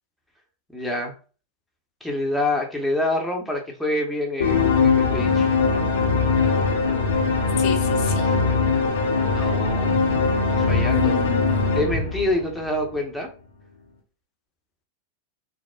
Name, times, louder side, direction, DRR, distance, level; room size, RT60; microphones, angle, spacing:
voice 1, 0.7-1.1 2.0-5.5 9.2-10.0 10.5-11.2 11.8-13.3, left 1 dB, ahead, 0 dB, 0.9 m, -26 dB
sound 1, 4.4-12.8, left 4 dB, 75° left, 0.9 m, -21 dB
voice 2, 7.6-8.4 10.9-11.7, left 7 dB, 45° left, 4 dB, 0.6 m, -31 dB
5.8 x 2.0 x 2.3 m, 0.36 s
figure-of-eight pair, 90°, 0 cm